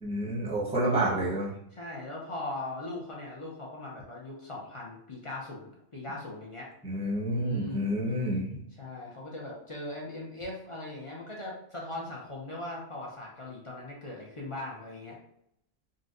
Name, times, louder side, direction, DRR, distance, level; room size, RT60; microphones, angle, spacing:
voice 1, 0.0-1.5 6.8-8.5, right 1 dB, 5° right, -5 dB, 0.7 m, -29 dB
voice 2, 0.9-1.2 1.7-6.7 7.3-7.9 8.8-15.2, left 2 dB, 35° left, -4 dB, 0.5 m, -40 dB
3.9 x 2.2 x 2.5 m, 0.75 s
omnidirectional pair, 1.2 m